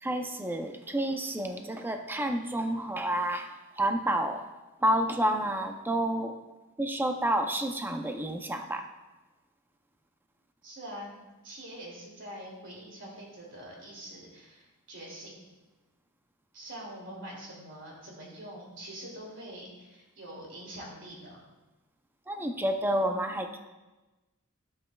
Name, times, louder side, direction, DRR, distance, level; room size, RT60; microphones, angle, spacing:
voice 1, 0.0-4.4 4.8-6.3 6.8-8.9 22.3-23.6, right 1 dB, 10° right, 5 dB, 0.5 m, -29 dB
voice 2, 10.6-11.1 11.4-15.3 16.5-21.4, right 1 dB, 60° right, -3 dB, 2.6 m, -44 dB
12.0 x 7.6 x 2.3 m, 1.1 s
head